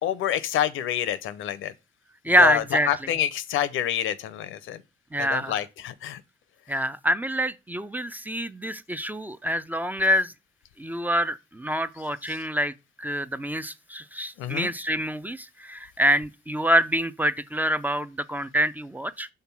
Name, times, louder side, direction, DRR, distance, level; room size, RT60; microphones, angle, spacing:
voice 1, 0.0-1.7 2.4-4.8 5.2-6.2 14.4-14.7, left 11 dB, 85° left, 0.7 m, -27 dB
voice 2, 2.2-2.9 5.1-5.5 6.7-10.3 10.8-12.7 13.0-19.3, equal, 10° right, 0.4 m, -25 dB
5.7 x 3.7 x 5.8 m
cardioid pair, 90°, 20 cm